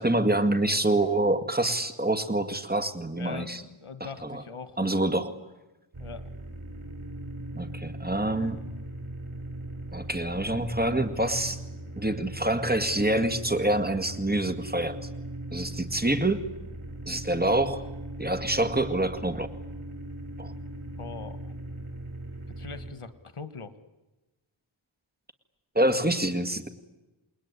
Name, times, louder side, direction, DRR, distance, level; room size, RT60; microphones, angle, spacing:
voice 1, 0.0-3.6 4.0-4.4 4.8-5.3 7.5-8.6 9.9-11.6 12.0-15.0 15.5-16.4 17.1-17.8 18.2-19.5 20.4-20.5 25.8-26.7, right 1 dB, 20° right, 8 dB, 2.1 m, -26 dB
voice 2, 3.1-5.0 6.0-6.3 21.0-21.5 22.5-23.8, left 5 dB, 85° left, 12 dB, 1.6 m, -42 dB
sound 1, 5.9-22.9, right 1 dB, 85° right, 3.4 m, -39 dB
28.5 x 20.0 x 9.8 m, 1.1 s
wide cardioid pair, 45°, 50 cm